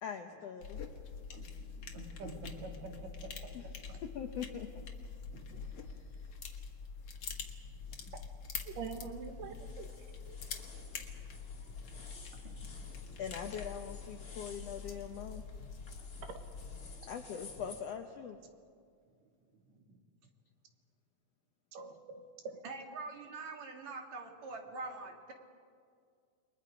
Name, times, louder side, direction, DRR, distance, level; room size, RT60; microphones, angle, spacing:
voice 1, 0.0-0.8 3.5-3.6 4.0-4.7 5.9-6.0 13.2-15.4 17.1-18.4, left 8 dB, 75° left, 5 dB, 1.5 m, -42 dB
sound 1, 0.6-17.0, left 6 dB, 55° left, 2.2 m, -46 dB
voice 2, 1.3-4.0 5.3-5.9 7.4-8.1 10.9-11.4 11.7-12.1 12.3-13.2 19.7-20.0 22.6-25.3, right 3 dB, 60° right, 2 dB, 3.0 m, -47 dB
voice 3, 8.7-9.9 10.3-10.4 21.7-22.6, right 6 dB, 75° right, 6 dB, 3.0 m, -44 dB
sound 2, 9.0-17.8, left 3 dB, 30° left, 2.5 m, -54 dB
28.5 x 22.5 x 5.1 m, 2.2 s
omnidirectional pair, 3.9 m